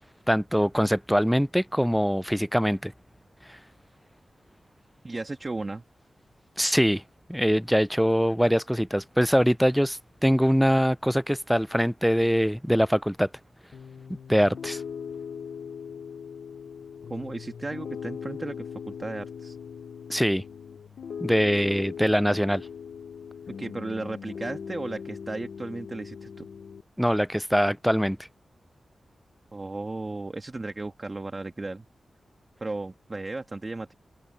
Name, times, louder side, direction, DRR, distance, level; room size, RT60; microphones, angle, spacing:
voice 1, 0.3-2.9 3.5-3.6 6.6-7.0 7.3-13.3 14.3-14.8 20.1-20.4 21.2-22.6 27.0-28.2, equal, ahead, 0.3 m, -23 dB
voice 2, 5.0-5.8 17.1-19.6 23.6-26.5 29.5-31.9 32.6-33.9, right 2 dB, 30° right, 1.5 m, -35 dB
Piano, 13.7-26.8, left 7 dB, 90° left, 0.7 m, -40 dB
open air
wide cardioid pair, 115°, 0 cm